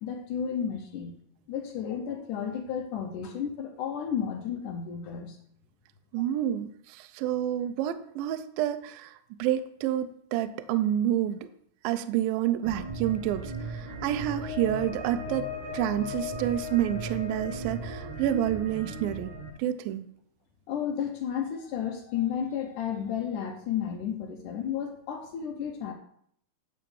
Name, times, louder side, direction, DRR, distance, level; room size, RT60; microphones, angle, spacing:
voice 1, 0.0-1.1 1.5-5.4 20.7-25.9, left 8 dB, 75° left, 4 dB, 1.9 m, -32 dB
voice 2, 6.1-9.1 9.4-11.4 11.8-19.3 19.6-20.1, right 12 dB, 80° right, 10 dB, 2.2 m, -29 dB
sound 1, 12.6-19.5, left 1 dB, 50° right, 1.6 m, -37 dB
11.0 x 3.8 x 7.0 m, 0.66 s
omnidirectional pair, 4.5 m